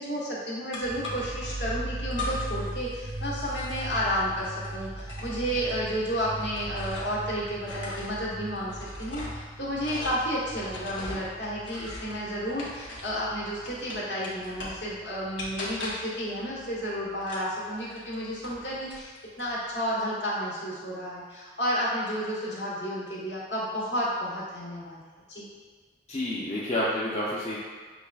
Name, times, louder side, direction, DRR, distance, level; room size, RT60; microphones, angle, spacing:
voice 1, 0.0-25.0 25.3-25.4, equal, 65° left, -7 dB, 1.1 m, -31 dB
sound 1, 0.7-1.5 2.1-2.7 3.0-7.3 7.6-13.2 13.6-14.9 15.4-16.2 17.2-18.6 18.9-19.5, left 2 dB, 90° left, 0.9 m, -40 dB
sound 2, 0.8-17.3 17.6-17.7 18.1-18.7, right 1 dB, 35° right, 0.4 m, -40 dB
voice 2, 26.1-27.6, left 1 dB, 35° left, -7 dB, 0.5 m, -29 dB
6.6 x 2.4 x 2.3 m, 1.5 s
head